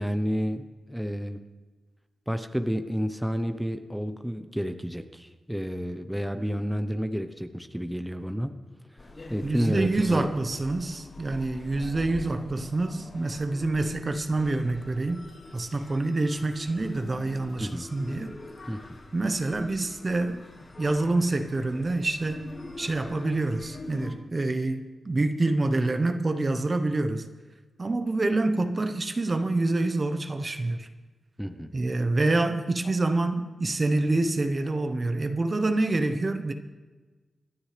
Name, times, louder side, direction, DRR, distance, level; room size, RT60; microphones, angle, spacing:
voice 1, 0.0-1.4 2.3-8.5 9.0-10.3 17.6-17.9 18.7-18.8 31.4-31.7, equal, ahead, 0.8 m, -30 dB
sound 1, 9.0-24.1, left 2 dB, 50° left, 4.8 m, -44 dB
voice 2, 9.4-15.3 15.5-18.3 19.1-20.5 20.8-22.5 22.8-27.2 27.8-30.9 31.7-36.5, right 2 dB, 40° right, 1.0 m, -27 dB
27.0 x 9.7 x 3.4 m
cardioid pair, 65°, 0 cm